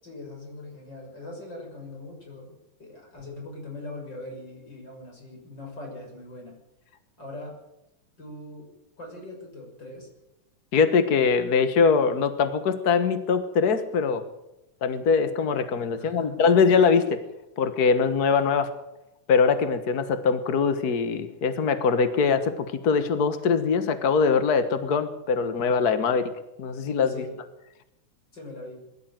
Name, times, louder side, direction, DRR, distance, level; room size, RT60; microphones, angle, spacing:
voice 1, 0.0-6.6 7.2-7.6 8.2-8.7 9.0-10.1 15.9-16.4 27.1-27.4 28.3-28.8, left 2 dB, 30° left, 1 dB, 7.1 m, -41 dB
voice 2, 10.7-14.2 14.8-17.2 17.6-18.7 19.3-26.3 26.6-27.1, left 5 dB, 60° left, 10 dB, 0.9 m, -22 dB
21.5 x 13.5 x 9.1 m, 0.90 s
omnidirectional pair, 3.7 m